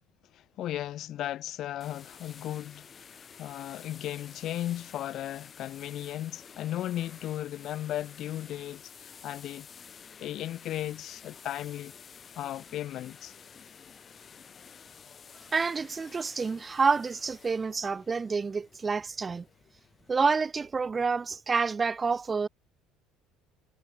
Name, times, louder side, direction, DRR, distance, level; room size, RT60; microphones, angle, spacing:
voice 1, 0.3-2.9 3.4-9.7 10.2-11.9 12.4-13.3, left 13 dB, 55° left, 1.1 m, -36 dB
sound 1, 1.8-20.1, left 6 dB, 30° left, 1.5 m, -51 dB
voice 2, 15.5-19.4 20.1-22.5, right 4 dB, 25° right, 0.8 m, -28 dB
cardioid pair, 120°, 0 cm